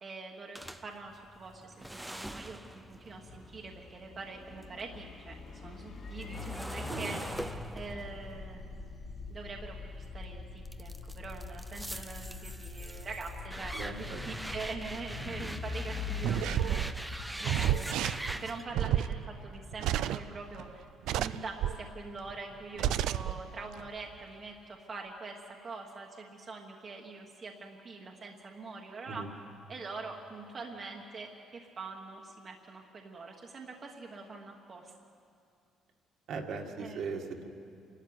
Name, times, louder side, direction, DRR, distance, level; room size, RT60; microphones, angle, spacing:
voice 1, 0.0-7.2 7.7-8.9 9.3-17.1 17.4-20.8 21.1-29.2 29.7-34.9 36.8-37.2, right 3 dB, 30° right, 0 dB, 1.3 m, -44 dB
sound 1, 0.5-4.8 5.2-10.1 10.6-18.6, right 1 dB, 5° right, 0.6 m, -43 dB
sound 2, 2.4-18.2, left 4 dB, 35° left, 2.1 m, -43 dB
voice 2, 13.7-14.2 29.1-29.3 36.3-37.5, right 4 dB, 55° right, 2 dB, 2.0 m, -38 dB
sound 3, 16.2-20.6 21.0-21.9 22.3-22.4 22.8-23.4 23.7-23.8, right 11 dB, 80° right, 0.5 m, -31 dB
27.5 x 12.5 x 9.6 m, 2.5 s
cardioid pair, 165°, 0 cm